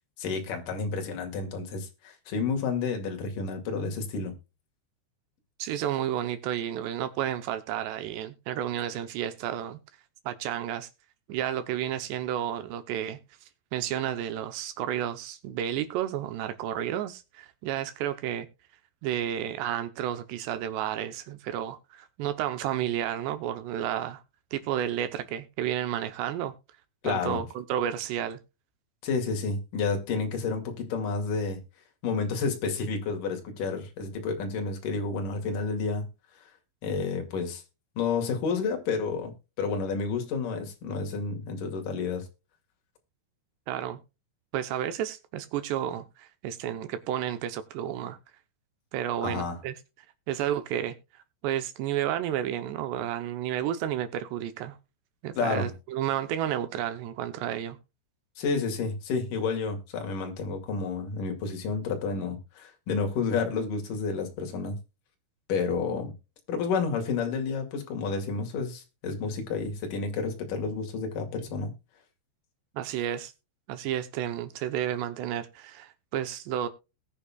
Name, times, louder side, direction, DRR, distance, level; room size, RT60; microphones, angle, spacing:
voice 1, 0.2-4.3 27.0-27.4 29.0-31.6 32.0-36.1 36.8-37.6 38.0-42.3 49.2-49.6 55.3-55.7 58.4-64.8 65.5-66.1 66.5-71.7, left 4 dB, 50° left, 3.3 m, -30 dB
voice 2, 5.6-9.8 10.3-10.9 11.3-13.2 13.7-18.5 19.0-24.2 24.5-26.5 27.0-28.4 43.7-44.0 44.5-48.2 48.9-49.8 50.3-54.8 55.2-57.8 72.8-73.3 73.7-76.7, right 11 dB, 80° right, 2.6 m, -31 dB
20.0 x 6.6 x 2.3 m
omnidirectional pair, 5.8 m